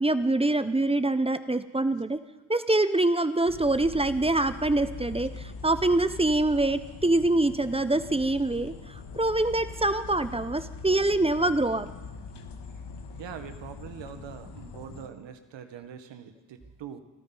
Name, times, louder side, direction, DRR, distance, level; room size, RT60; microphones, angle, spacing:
voice 1, 0.0-2.2 2.5-8.7 9.2-11.9, right 2 dB, 10° right, 12 dB, 1.0 m, -25 dB
sound 1, 3.5-15.1, left 4 dB, 60° left, 1.7 m, -42 dB
voice 2, 13.1-17.0, right 8 dB, 70° right, 8 dB, 1.6 m, -43 dB
25.0 x 13.5 x 4.1 m, 1.2 s
supercardioid pair, 50°, 46 cm